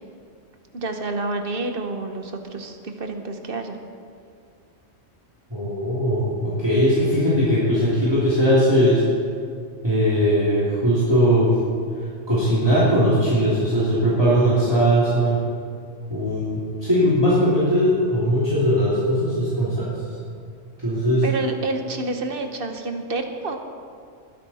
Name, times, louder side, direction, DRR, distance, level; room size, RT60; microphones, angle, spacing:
voice 1, 0.7-3.8 21.2-23.6, right 2 dB, 50° right, 5 dB, 1.3 m, -29 dB
voice 2, 5.5-9.0 9.8-11.5 12.3-15.4 16.1-19.9 20.8-21.2, equal, 20° right, -11 dB, 3.0 m, -19 dB
20.5 x 10.5 x 4.3 m, 2.2 s
omnidirectional pair, 1.3 m